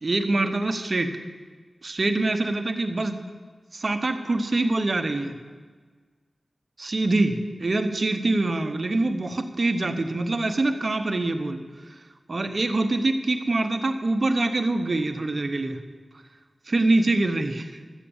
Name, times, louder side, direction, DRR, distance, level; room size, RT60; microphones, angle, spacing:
voice 1, 0.0-1.2 1.8-3.2 3.7-5.4 6.8-11.9 12.3-15.8 16.7-17.7, right 2 dB, 55° right, 7 dB, 1.0 m, -24 dB
12.5 x 8.4 x 7.1 m, 1.5 s
cardioid pair, 50°, 0 cm